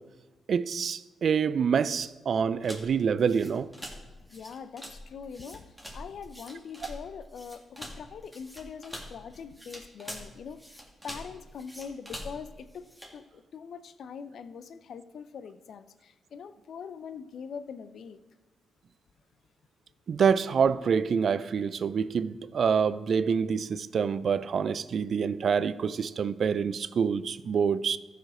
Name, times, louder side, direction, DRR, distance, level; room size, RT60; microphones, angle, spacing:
voice 1, 0.5-3.7 20.1-28.0, right 6 dB, 65° right, 0.4 m, -26 dB
sound 1, 2.6-13.2, equal, 5° left, 2.5 m, -45 dB
voice 2, 4.3-18.2, left 6 dB, 70° left, 0.5 m, -43 dB
14.0 x 5.0 x 4.9 m
supercardioid pair, 45°, 0 cm